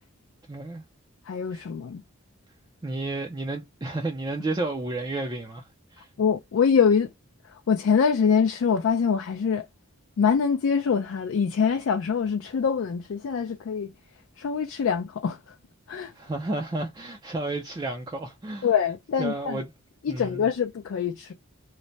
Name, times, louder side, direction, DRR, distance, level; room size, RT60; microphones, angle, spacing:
voice 1, 0.5-0.8 1.5-1.6 2.8-6.1 16.1-18.7 19.2-19.6 20.1-20.5, right 2 dB, 20° right, 0.3 m, -32 dB
voice 2, 1.3-2.0 6.2-7.1 7.4-9.6 10.2-13.9 14.4-15.6 15.9-16.1 18.6-19.6 20.0-21.3, left 6 dB, 60° left, 0.3 m, -24 dB
3.1 x 2.0 x 2.6 m
head